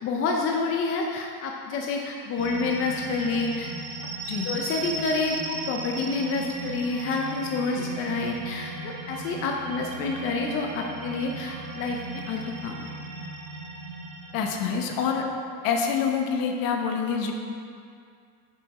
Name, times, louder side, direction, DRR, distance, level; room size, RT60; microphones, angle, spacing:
voice 1, 0.0-3.7 4.4-12.9, left 3 dB, 35° left, 1 dB, 0.5 m, -28 dB
sound 1, 2.4-15.2, right 3 dB, 40° right, 0.9 m, -37 dB
voice 2, 14.3-15.2 15.6-17.3, left 6 dB, 55° left, 3 dB, 1.0 m, -26 dB
7.0 x 7.0 x 4.1 m, 2.4 s
cardioid pair, 160°, 39 cm